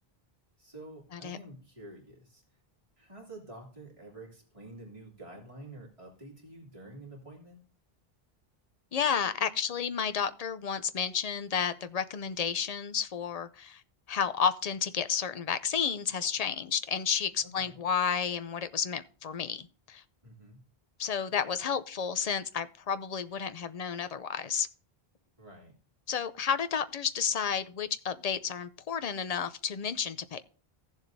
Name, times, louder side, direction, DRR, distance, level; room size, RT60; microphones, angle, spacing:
voice 1, 0.6-2.4 3.0-7.6 17.4-17.8 20.2-20.6 25.4-25.7, right 1 dB, 30° right, 2.8 m, -48 dB
voice 2, 8.9-13.8 14.1-20.0 21.0-24.7 26.1-30.4, left 7 dB, 45° left, 0.6 m, -31 dB
15.5 x 7.3 x 2.6 m
omnidirectional pair, 1.0 m